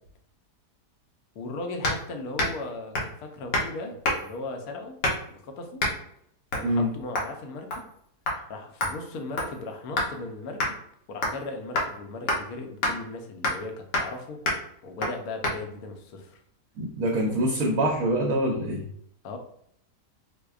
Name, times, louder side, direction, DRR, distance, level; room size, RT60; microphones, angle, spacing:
voice 1, 1.3-5.0 5.3-5.8 6.5-7.9 8.5-10.8 11.1-14.4 14.8-16.4 19.2-19.4, left 2 dB, 70° left, 4 dB, 1.0 m, -37 dB
sound 1, 1.8-2.0 2.4-2.6 2.9-3.2 3.5-3.7 4.0-4.4 5.0-5.3 5.8-6.0 6.5-6.7 7.1-7.3 7.7-8.0 8.3-8.4 8.8-10.1 10.6-10.7 11.2-11.4 11.8-11.9 12.3-12.4 12.8-12.9 13.4-13.7 13.9-14.1 14.5-14.6 15.0-15.1 15.4-15.6, left 1 dB, 85° left, 1.5 m, -28 dB
voice 2, 16.8-18.8, right 1 dB, 65° right, -1 dB, 0.9 m, -25 dB
4.7 x 2.1 x 2.3 m, 0.68 s
omnidirectional pair, 1.8 m